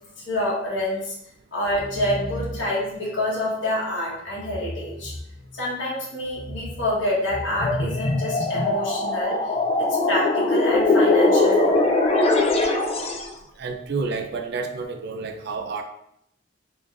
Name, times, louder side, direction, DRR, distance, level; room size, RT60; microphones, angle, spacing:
voice 1, 0.2-1.1 1.5-5.1 5.6-9.4 10.1-11.8, left 1 dB, 70° left, -6 dB, 1.4 m, -27 dB
sound 1, 1.6-2.9 4.3-5.7 6.2-8.7, left 1 dB, 50° left, 0.8 m, -37 dB
sound 2, 7.5-13.3, left 2 dB, 30° left, 0.4 m, -21 dB
voice 2, 13.6-15.8, right 4 dB, 60° right, 5 dB, 0.4 m, -29 dB
3.6 x 3.2 x 2.6 m, 0.75 s
head